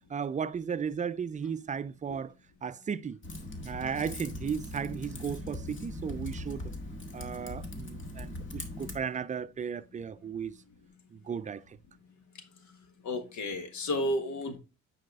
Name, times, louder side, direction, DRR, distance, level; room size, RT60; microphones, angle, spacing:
voice 1, 0.1-2.3 2.6-3.2 3.6-6.7 7.1-10.5 11.1-11.8, right 7 dB, 25° right, 0.4 m, -35 dB
Typing, 3.2-9.0, left 1 dB, 40° left, 1.8 m, -40 dB
voice 2, 13.0-14.6, left 1 dB, 70° left, 1.5 m, -32 dB
8.8 x 4.2 x 3.6 m
cardioid pair, 90°, 30 cm